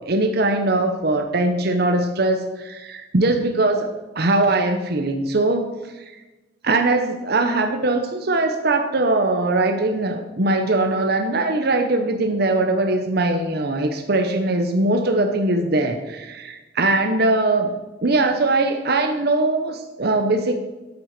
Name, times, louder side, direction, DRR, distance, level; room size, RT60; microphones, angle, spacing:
voice 1, 0.0-3.9 4.1-6.1 6.6-17.7 18.0-20.5, right 2 dB, 60° right, 5 dB, 0.9 m, -21 dB
9.2 x 7.8 x 6.6 m, 1.1 s
head